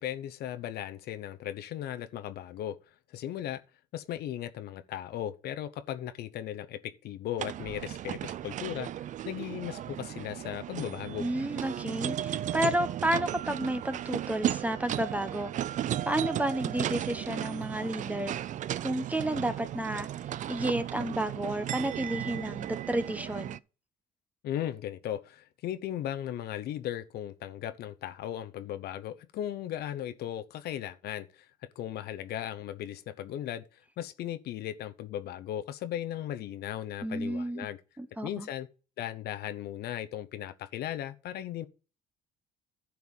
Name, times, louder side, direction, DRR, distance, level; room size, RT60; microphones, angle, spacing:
voice 1, 0.0-2.8 3.1-3.6 3.9-11.3 24.4-31.5 31.8-33.6 34.0-37.8 38.2-38.7 39.0-41.7, left 11 dB, 70° left, 0.9 m, -37 dB
sound 1, 7.4-23.6, right 11 dB, 50° right, 0.4 m, -35 dB
voice 2, 11.2-15.5 16.1-18.3 18.8-20.1 20.5-23.6 37.0-37.7 38.0-38.5, right 1 dB, 10° right, 1.0 m, -31 dB
11.0 x 4.7 x 7.0 m
cardioid pair, 110°, 17 cm